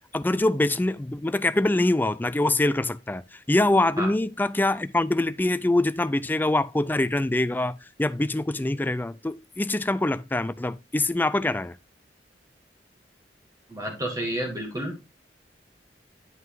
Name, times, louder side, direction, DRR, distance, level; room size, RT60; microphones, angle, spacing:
voice 1, 0.1-11.8, left 2 dB, 10° left, 0.4 m, -24 dB
voice 2, 13.7-15.1, right 1 dB, 20° right, 2.1 m, -30 dB
9.3 x 5.5 x 3.8 m
head